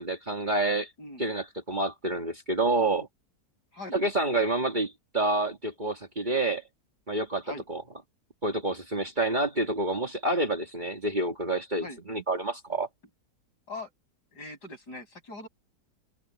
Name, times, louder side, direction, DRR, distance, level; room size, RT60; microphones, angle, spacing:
voice 1, 0.0-0.9 1.2-3.1 3.9-6.6 7.1-7.4 7.7-7.8 8.4-12.9, right 2 dB, 25° right, 2.4 m, -28 dB
voice 2, 14.3-15.5, left 2 dB, 70° left, 8.3 m, -41 dB
open air
omnidirectional pair, 1.8 m